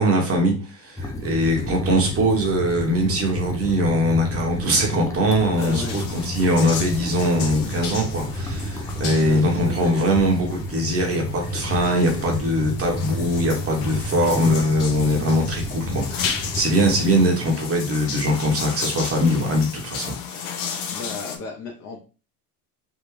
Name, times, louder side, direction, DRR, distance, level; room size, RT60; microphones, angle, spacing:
voice 1, 0.0-20.5, equal, 30° right, 1 dB, 1.1 m, -22 dB
sound 1, 1.0-17.2, equal, 10° left, 0.4 m, -30 dB
voice 2, 5.5-6.0 8.9-10.0 20.9-22.0, left 4 dB, 40° left, 0 dB, 0.8 m, -34 dB
sound 2, 5.6-21.4, left 7 dB, 70° left, 0.9 m, -34 dB
3.6 x 2.4 x 3.1 m, 0.35 s
supercardioid pair, 100°, 47 cm